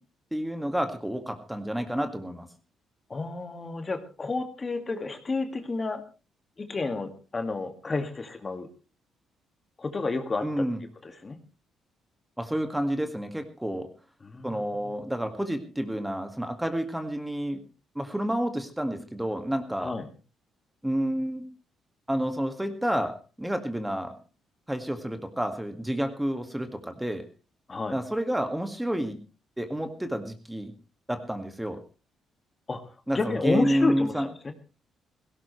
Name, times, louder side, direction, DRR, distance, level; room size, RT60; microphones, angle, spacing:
voice 1, 0.3-2.5 10.4-10.8 12.4-13.9 14.4-17.6 18.0-20.0 20.8-21.4 22.1-24.1 24.7-27.2 27.9-29.2 29.6-30.7 31.1-31.8 33.1-34.3, equal, 5° right, 7 dB, 1.9 m, -29 dB
voice 2, 3.1-6.0 6.6-8.7 9.8-10.6 11.0-11.4 14.2-14.9 19.8-20.0 27.7-28.0 32.7-32.8 33.1-34.5, left 3 dB, 30° left, 7 dB, 2.1 m, -31 dB
17.5 x 16.5 x 3.2 m, 0.34 s
cardioid pair, 90°, 0 cm